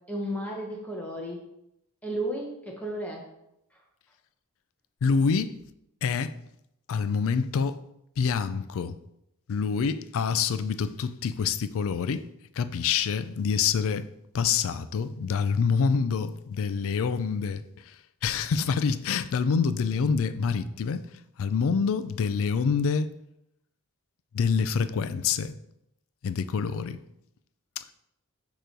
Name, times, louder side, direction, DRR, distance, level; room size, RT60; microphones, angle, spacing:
voice 1, 0.1-1.4 2.0-3.3, right 1 dB, 5° left, 0.9 m, -33 dB
voice 2, 5.0-5.6 6.0-6.4 6.9-7.8 8.2-8.9 9.5-12.3 12.6-14.1 14.3-17.9 18.2-21.1 21.4-23.1 24.3-25.5 26.2-27.0 27.8-27.9, left 5 dB, 65° left, 0.4 m, -26 dB
6.6 x 3.1 x 5.2 m
head